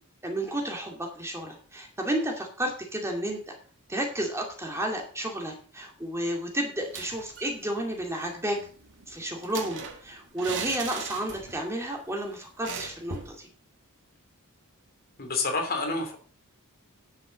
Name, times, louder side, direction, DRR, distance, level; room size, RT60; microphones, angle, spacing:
voice 1, 0.2-3.6 3.9-8.6 9.1-13.5, right 1 dB, 10° right, 1 dB, 2.4 m, -32 dB
sound 1, 6.8-7.6 7.9-8.0 8.3-11.7 12.0-12.1 12.6-13.4, right 5 dB, 55° right, 2.1 m, -39 dB
voice 2, 15.2-16.2, left 3 dB, 45° left, 4 dB, 3.0 m, -28 dB
10.5 x 7.6 x 6.5 m, 0.43 s
head